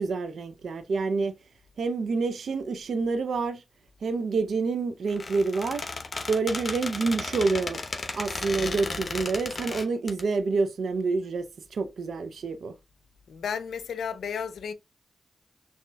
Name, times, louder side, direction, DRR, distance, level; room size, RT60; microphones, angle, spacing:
voice 1, 0.0-1.3 1.8-3.6 4.0-5.9 6.3-7.8 8.1-12.7, right 4 dB, 80° right, 0.5 m, -28 dB
Squeak, 5.1-10.2, left 3 dB, 50° left, 1.0 m, -34 dB
voice 2, 13.3-14.7, left 7 dB, 85° left, 0.6 m, -33 dB
6.1 x 2.8 x 2.3 m
cardioid pair, 50°, 0 cm